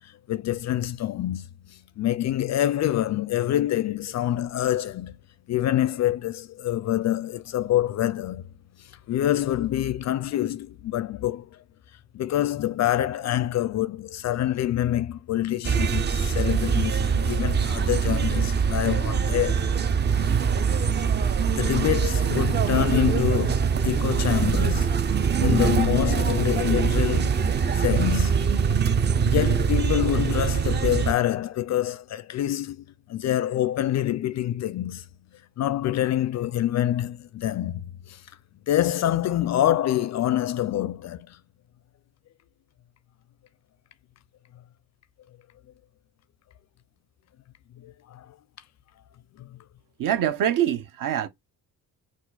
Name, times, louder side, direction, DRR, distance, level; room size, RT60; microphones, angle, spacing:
voice 1, 0.3-1.5 2.0-5.2 5.5-8.4 9.1-11.5 12.1-19.8 21.2-24.9 25.4-28.7 29.1-32.8 33.1-35.0 35.6-37.8 38.1-38.2 38.7-41.4 47.8-48.3 49.4-49.5, left 12 dB, 45° left, 0.4 m, -26 dB
sound 1, 15.7-31.1, right 6 dB, 30° right, 0.4 m, -23 dB
voice 2, 50.0-51.3, right 10 dB, 55° right, 0.9 m, -24 dB
4.4 x 2.5 x 4.1 m
cardioid pair, 135°, 39 cm